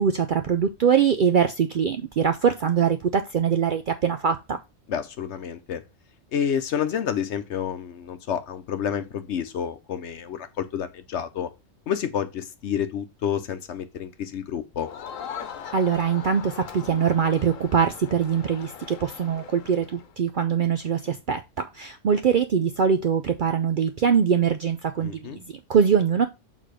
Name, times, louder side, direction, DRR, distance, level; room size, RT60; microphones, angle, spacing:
voice 1, 0.0-4.6 15.7-26.3, right 7 dB, 60° right, 0.5 m, -23 dB
voice 2, 4.9-5.8 6.3-11.5 11.9-14.9 25.0-25.4, left 8 dB, 65° left, 1.0 m, -29 dB
Crowd, 14.8-20.1, left 8 dB, 90° left, 1.2 m, -40 dB
6.5 x 3.6 x 5.0 m
omnidirectional pair, 1.3 m